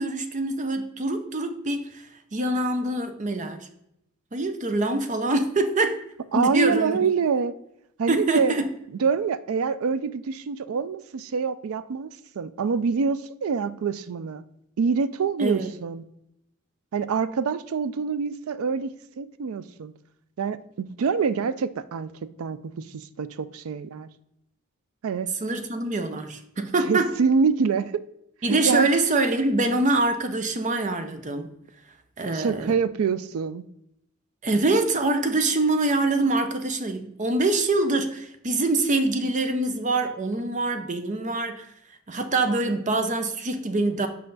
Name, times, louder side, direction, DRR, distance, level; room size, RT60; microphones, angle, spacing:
voice 1, 0.0-2.1 2.3-3.7 4.3-6.0 6.3-7.0 8.1-8.7 15.4-15.7 25.4-27.1 28.4-31.5 32.2-32.7 34.4-41.6 42.1-44.1, right 2 dB, 35° right, 8 dB, 0.6 m, -24 dB
voice 2, 6.3-7.5 8.0-8.5 9.0-12.1 12.4-14.4 14.8-16.0 16.9-19.9 20.4-22.1 22.4-24.1 25.0-25.3 26.9-27.9 28.6-28.9 32.3-33.6, right 5 dB, 85° right, 15 dB, 0.4 m, -25 dB
5.6 x 5.1 x 3.9 m, 0.79 s
head